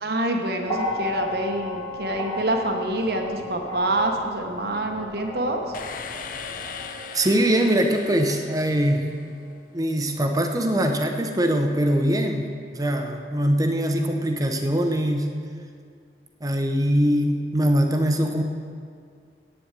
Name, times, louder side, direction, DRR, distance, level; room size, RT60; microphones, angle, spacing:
voice 1, 0.0-5.6, right 1 dB, 60° right, 3 dB, 1.1 m, -26 dB
sound 1, 0.6-9.0 10.0-10.1, left 1 dB, 30° left, 1.5 m, -35 dB
sound 2, 5.7-9.6, left 5 dB, 50° left, 0.5 m, -38 dB
voice 2, 7.1-9.1 9.7-15.3 16.4-18.4, equal, 20° right, 5 dB, 0.8 m, -22 dB
8.7 x 7.9 x 8.3 m, 2.2 s
head